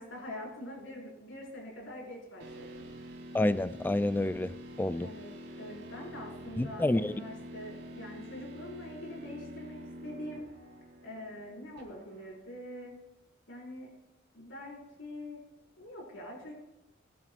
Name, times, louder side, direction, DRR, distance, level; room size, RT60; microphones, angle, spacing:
voice 1, 0.0-2.9 5.0-5.3 5.6-10.5 11.0-12.9 13.5-13.9 14.3-15.4 15.8-16.5, left 1 dB, 75° left, 5.4 m, -44 dB
sound 1, 2.4-12.4, equal, 60° right, 3.7 m, -47 dB
voice 2, 3.3-5.1 6.6-7.1, left 1 dB, 10° left, 0.3 m, -29 dB
22.0 x 11.0 x 2.5 m
head